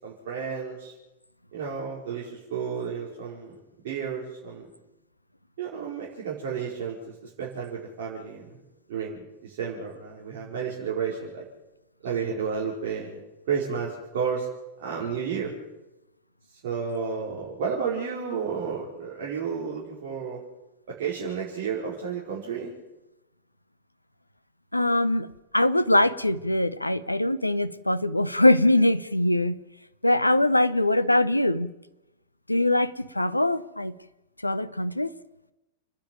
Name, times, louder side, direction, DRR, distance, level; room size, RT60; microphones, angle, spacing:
voice 1, 0.0-0.9 1.5-3.5 3.8-4.6 5.6-8.6 8.9-11.5 12.0-13.2 13.5-14.5 14.8-15.5 16.6-20.4 21.0-22.7, right 6 dB, 55° right, -5 dB, 5.0 m, -32 dB
voice 2, 24.7-25.3 25.5-29.6 30.0-31.7 32.5-33.9 34.4-35.1, left 1 dB, 85° left, 16 dB, 0.8 m, -22 dB
29.0 x 10.5 x 9.1 m, 0.96 s
figure-of-eight pair, 90°, 0 cm